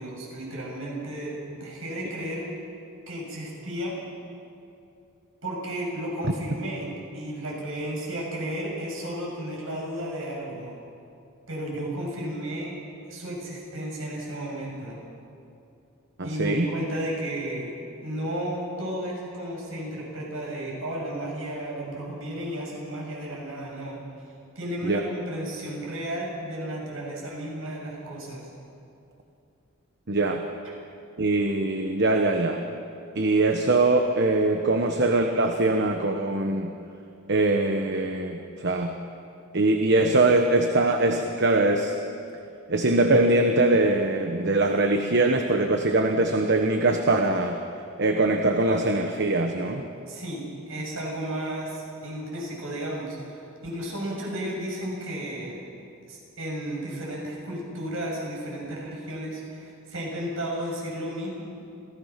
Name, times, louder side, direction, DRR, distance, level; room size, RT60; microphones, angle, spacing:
voice 1, 0.0-2.5 3.1-4.0 5.4-10.8 11.5-12.7 13.1-15.0 16.2-17.7 18.0-24.0 24.6-28.5 50.1-55.6 56.1-61.4, right 1 dB, 70° right, -2 dB, 7.0 m, -33 dB
voice 2, 16.2-16.6 24.8-25.0 30.1-30.4 31.2-32.6 33.1-36.7 37.3-39.0 39.5-41.9 42.7-47.6 48.0-49.8, right 2 dB, 55° right, 4 dB, 1.2 m, -22 dB
27.0 x 17.0 x 5.9 m, 2.6 s
head